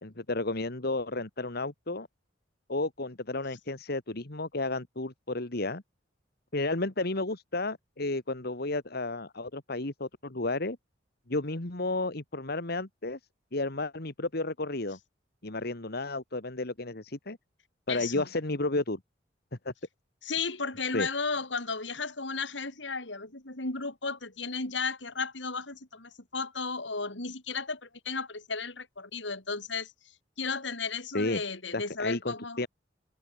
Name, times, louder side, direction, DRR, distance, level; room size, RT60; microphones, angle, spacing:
voice 1, 0.0-2.1 2.7-5.8 6.5-10.8 11.3-13.2 13.5-15.0 15.4-17.4 17.9-19.0 19.7-19.8 20.9-21.1 31.1-31.4 31.7-32.7, left 2 dB, 60° left, 2.2 m, -32 dB
voice 2, 17.9-18.3 20.2-29.9 30.4-32.6, left 4 dB, 80° left, 4.6 m, -34 dB
head